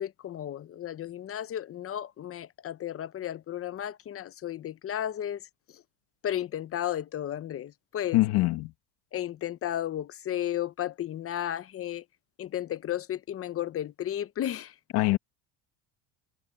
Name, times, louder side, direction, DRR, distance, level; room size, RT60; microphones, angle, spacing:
voice 1, 0.0-5.4 6.2-8.2 9.1-12.0 12.4-14.7, left 11 dB, 35° left, 0.8 m, -33 dB
voice 2, 8.1-8.7 14.9-15.2, left 19 dB, 70° left, 2.2 m, -23 dB
cardioid pair, 135°, 42 cm